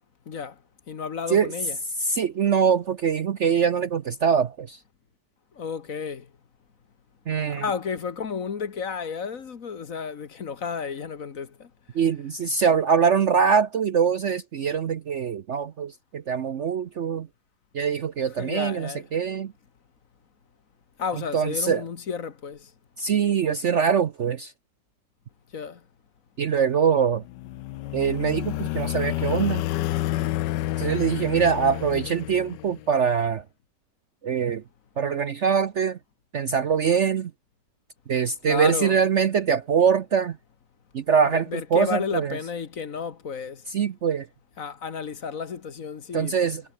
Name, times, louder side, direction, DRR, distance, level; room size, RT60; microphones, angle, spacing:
voice 1, 0.3-0.6 0.9-1.8 5.5-6.3 7.5-11.7 18.4-19.0 21.0-22.7 25.5-25.8 38.5-39.0 41.3-43.7 44.6-46.3, left 6 dB, 50° left, 1.7 m, -32 dB
voice 2, 2.0-4.8 7.3-7.6 11.9-17.3 17.7-19.5 21.3-21.8 23.0-24.5 26.4-27.2 27.9-29.6 30.8-33.4 34.2-34.6 35.0-36.0 36.3-37.3 38.1-40.4 40.9-42.4 43.7-44.3 46.1-46.6, right 7 dB, 55° right, 0.9 m, -23 dB
sound 1, 27.2-33.0, left 15 dB, 90° left, 1.3 m, -29 dB
omnidirectional pair, 1.9 m